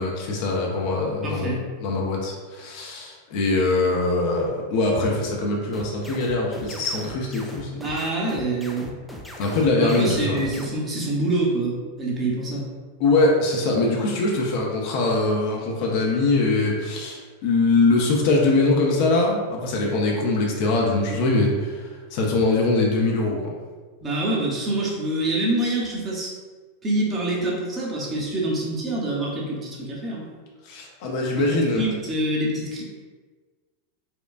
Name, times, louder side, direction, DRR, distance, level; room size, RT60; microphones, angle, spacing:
voice 1, 0.0-7.8 9.4-10.4 13.0-23.5 30.6-31.9, left 2 dB, 45° left, -1 dB, 0.6 m, -22 dB
voice 2, 1.2-1.6 7.8-8.9 9.8-12.7 24.0-26.3 26.8-30.3 31.4-32.8, right 2 dB, 20° right, -4 dB, 0.9 m, -26 dB
sound 1, 5.7-10.7, equal, ahead, 0.4 m, -39 dB
4.3 x 2.2 x 2.5 m, 1.4 s
figure-of-eight pair, 90°, 0 cm